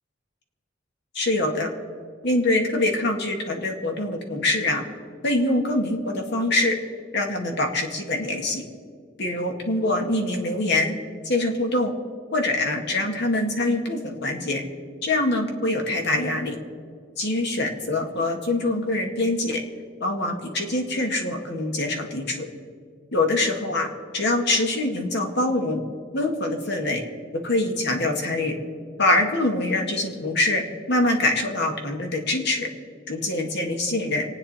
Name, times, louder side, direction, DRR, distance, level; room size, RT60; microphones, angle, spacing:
voice 1, 1.1-1.7 2.2-4.8 5.2-6.8 7.1-8.6 9.2-11.0 11.2-11.9 12.3-14.6 15.0-16.6 17.2-19.6 20.0-22.5 23.1-23.9 24.1-25.8 26.1-27.0 27.4-28.6 29.0-32.7 33.1-34.2, left 2 dB, 60° left, 3 dB, 2.0 m, -24 dB
26.0 x 9.0 x 4.3 m, 2.1 s
head